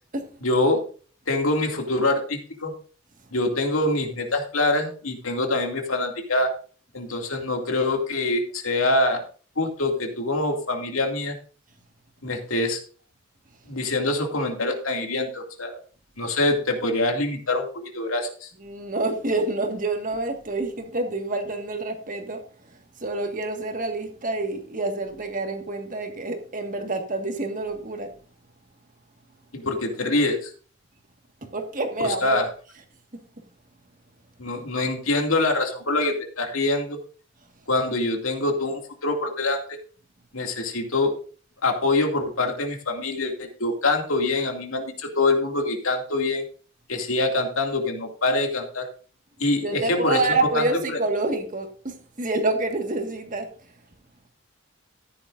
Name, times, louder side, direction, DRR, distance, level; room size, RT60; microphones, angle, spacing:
voice 1, 0.4-0.8 1.3-2.7 3.3-6.5 6.9-9.2 9.6-11.4 12.2-12.8 13.7-15.7 16.2-18.5 29.5-30.5 32.0-32.5 34.4-37.0 37.7-39.8 40.3-41.2 41.6-46.4 46.9-48.9 49.4-50.2 50.6-50.7 50.9-51.0, left 2 dB, 85° left, 2.4 m, -25 dB
voice 2, 18.6-28.1 31.4-32.4 33.1-33.2 49.6-53.5, right 2 dB, 40° right, 1.7 m, -28 dB
14.0 x 10.5 x 2.6 m
head